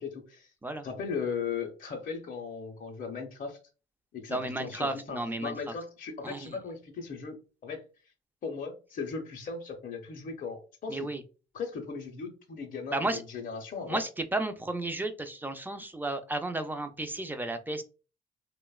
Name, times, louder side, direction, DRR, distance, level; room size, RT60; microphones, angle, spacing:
voice 1, 0.0-0.5 0.8-3.6 4.1-7.8 8.4-11.1 11.5-14.0, left 5 dB, 45° left, 0.5 m, -37 dB
voice 2, 4.3-5.6 6.2-6.5 10.9-11.2 12.9-13.2 13.9-17.8, right 2 dB, 10° right, 0.3 m, -33 dB
2.9 x 2.0 x 2.2 m
cardioid pair, 90°, 20 cm